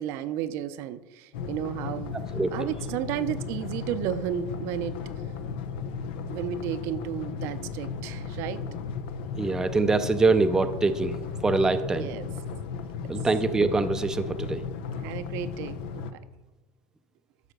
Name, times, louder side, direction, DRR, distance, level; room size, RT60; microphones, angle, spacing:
voice 1, 0.0-2.2 2.5-5.0 6.3-8.6 12.0-12.3 13.0-13.1 15.0-16.2, right 11 dB, 60° right, 11 dB, 0.6 m, -33 dB
sound 1, 1.3-16.1, left 6 dB, 85° left, 0.8 m, -35 dB
voice 2, 2.3-2.7 9.4-11.2 11.4-12.1 13.1-14.6, right 3 dB, 10° right, 8 dB, 0.5 m, -24 dB
12.0 x 4.9 x 6.6 m, 1.1 s
cardioid pair, 135°, 5 cm